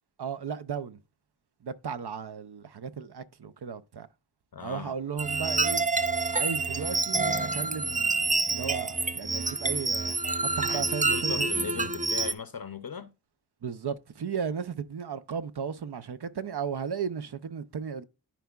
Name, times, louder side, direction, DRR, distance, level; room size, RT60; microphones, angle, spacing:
voice 1, 0.2-1.0 1.6-4.1 4.6-5.8 6.3-8.2 8.5-10.2 10.4-11.5 13.6-18.0, right 6 dB, 60° right, 0.6 m, -35 dB
voice 2, 4.5-4.9 10.7-13.1, left 6 dB, 50° left, 0.6 m, -38 dB
sound 1, 5.2-12.3, right 3 dB, 20° right, 0.4 m, -28 dB
13.0 x 4.6 x 2.3 m
wide cardioid pair, 55°, 45 cm